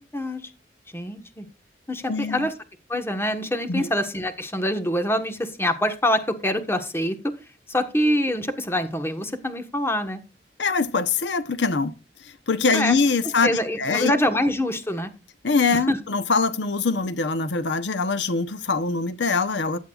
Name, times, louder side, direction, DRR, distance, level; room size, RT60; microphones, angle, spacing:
voice 1, 0.9-1.5 1.9-2.5 2.9-7.3 7.7-10.2 12.7-13.0 13.4-15.1 15.9-16.0, left 1 dB, 15° left, 1.3 m, -25 dB
voice 2, 2.1-2.5 3.7-3.9 10.6-11.9 12.2-13.5 13.8-14.1 15.4-19.8, left 4 dB, 75° left, 0.9 m, -23 dB
15.0 x 9.4 x 2.4 m
head